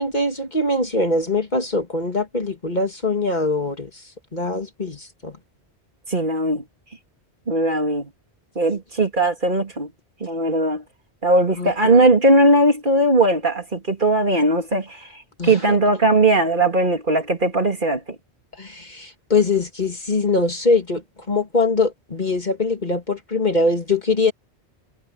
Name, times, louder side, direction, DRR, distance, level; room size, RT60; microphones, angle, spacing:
voice 1, 0.0-3.9 4.3-5.4 11.6-12.0 15.4-15.8 18.6-21.0 21.3-24.3, left 3 dB, 45° left, 2.4 m, -22 dB
voice 2, 6.1-6.6 7.5-8.1 8.5-9.9 10.2-10.8 11.2-18.0, right 2 dB, 50° right, 2.9 m, -19 dB
omnidirectional pair, 1.1 m